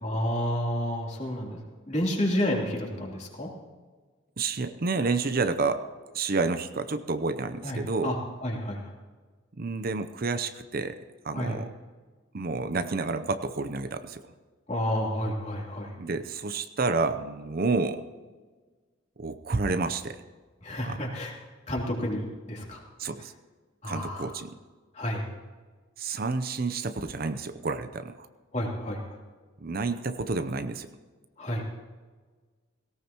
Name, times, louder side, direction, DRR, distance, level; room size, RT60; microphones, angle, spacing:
voice 1, 0.0-1.6 1.9-3.5 7.6-8.9 11.3-11.6 14.7-15.9 20.6-21.3 21.7-22.8 23.8-24.3 24.9-25.2 28.5-29.2 31.4-31.6, equal, 35° left, -2 dB, 3.3 m, -30 dB
voice 2, 4.4-5.8 6.1-8.1 9.6-11.0 11.2-11.7 12.3-14.2 16.0-18.0 19.2-20.2 20.8-21.0 23.0-23.3 23.8-24.6 26.0-28.3 29.6-30.9, right 3 dB, 50° right, 10 dB, 0.7 m, -29 dB
18.0 x 17.5 x 3.0 m, 1.4 s
head